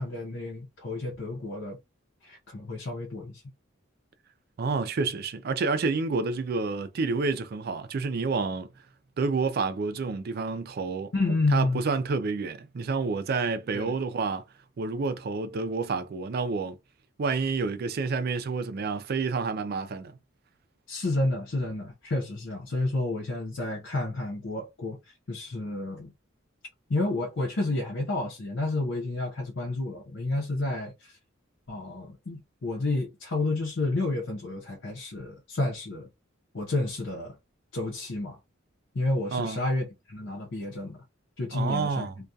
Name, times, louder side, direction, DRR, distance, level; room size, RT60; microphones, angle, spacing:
voice 1, 0.0-1.8 2.2-3.4 11.1-11.8 13.7-13.9 20.9-25.0 25.3-26.1 26.9-31.2 31.7-36.1 36.5-37.4 37.7-38.4 38.9-41.0 41.4-42.1, left 2 dB, 65° left, 0.7 m, -30 dB
voice 2, 4.6-8.7 9.2-11.1 11.5-14.4 14.8-16.8 17.2-20.2 39.3-39.6 41.5-42.2, right 4 dB, 50° right, 0.4 m, -29 dB
2.3 x 2.2 x 2.6 m
head